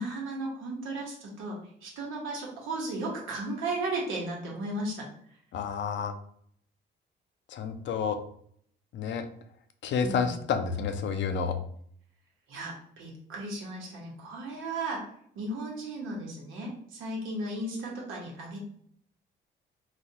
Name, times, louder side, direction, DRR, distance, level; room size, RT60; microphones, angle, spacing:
voice 1, 0.0-5.1 10.0-10.4 12.5-15.0 15.3-18.6, right 2 dB, 90° right, -2 dB, 1.1 m, -35 dB
voice 2, 5.5-6.1 7.5-8.2 8.9-9.3 9.8-11.5, left 6 dB, 65° left, 7 dB, 0.5 m, -29 dB
4.1 x 2.3 x 2.8 m, 0.63 s
cardioid pair, 90°, 20 cm